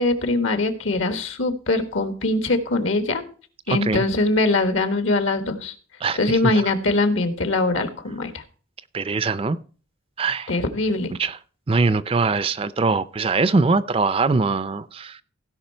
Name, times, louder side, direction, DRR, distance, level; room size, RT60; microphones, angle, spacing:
voice 1, 0.0-3.2 3.7-5.7 6.1-8.4 10.5-11.1, left 2 dB, 75° left, 1.5 m, -22 dB
voice 2, 3.7-4.0 6.0-6.2 8.9-9.6 10.2-10.5 11.2-11.4 11.7-15.2, right 4 dB, 25° right, 0.4 m, -22 dB
16.5 x 5.5 x 4.4 m
head